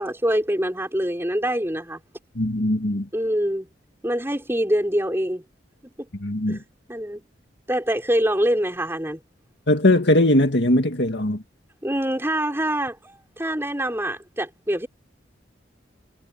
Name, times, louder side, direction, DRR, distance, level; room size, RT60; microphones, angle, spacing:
voice 1, 0.0-2.0 3.1-3.7 4.0-5.4 6.5-6.6 6.9-7.2 7.7-9.2 11.8-14.9, equal, 15° right, 5.3 m, -25 dB
voice 2, 2.4-3.1 6.2-6.6 9.7-11.4, left 1 dB, 65° left, 2.1 m, -20 dB
head